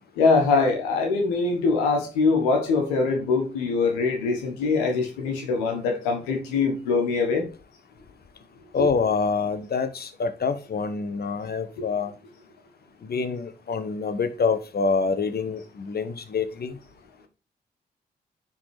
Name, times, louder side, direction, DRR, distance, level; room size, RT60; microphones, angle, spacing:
voice 1, 0.2-7.4 8.8-8.9, left 4 dB, 90° left, 1.5 m, -23 dB
voice 2, 8.7-12.1 13.0-16.7, left 5 dB, 50° left, 1.3 m, -26 dB
9.7 x 4.1 x 5.0 m
hypercardioid pair, 40°, 21 cm